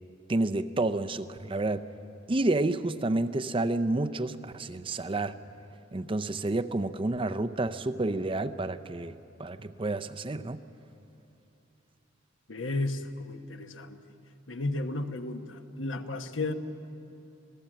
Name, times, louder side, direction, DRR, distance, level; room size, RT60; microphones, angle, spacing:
voice 1, 0.3-1.8 2.3-5.4 5.9-10.6, right 2 dB, 25° right, 10 dB, 0.6 m, -30 dB
voice 2, 12.5-14.0 14.5-16.5, left 2 dB, 70° left, 7 dB, 1.2 m, -33 dB
26.5 x 18.0 x 7.6 m, 2.8 s
head